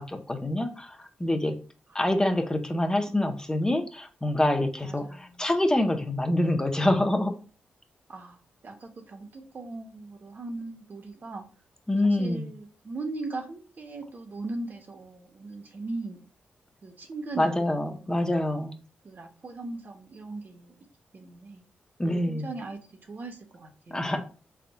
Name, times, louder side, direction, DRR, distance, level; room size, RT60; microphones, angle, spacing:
voice 1, 0.0-1.6 1.9-7.4 11.9-12.4 17.4-18.8 22.0-22.5 23.9-24.2, left 1 dB, 15° left, 5 dB, 0.8 m, -26 dB
voice 2, 1.9-2.4 4.8-5.4 8.1-8.4 8.6-11.4 12.0-16.2 16.8-18.3 19.0-20.7 21.1-21.6 22.3-22.8 23.1-24.2, right 3 dB, 55° right, 4 dB, 0.9 m, -39 dB
3.9 x 3.5 x 2.3 m, 0.37 s
supercardioid pair, 50°, 4 cm